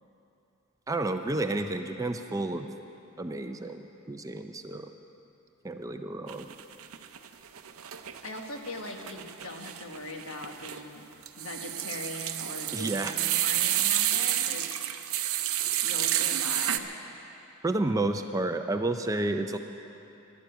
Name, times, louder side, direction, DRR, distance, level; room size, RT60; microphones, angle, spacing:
voice 1, 0.9-2.7 3.2-4.9 5.6-6.5 12.7-13.2 17.6-19.6, right 2 dB, 15° right, 6 dB, 0.4 m, -31 dB
sound 1, 6.3-7.3 7.6-16.8, right 12 dB, 70° right, 0.6 m, -30 dB
voice 2, 8.2-11.0 11.4-14.9 15.8-16.9, left 2 dB, 60° left, 3 dB, 1.4 m, -40 dB
12.0 x 11.5 x 9.1 m, 2.9 s
head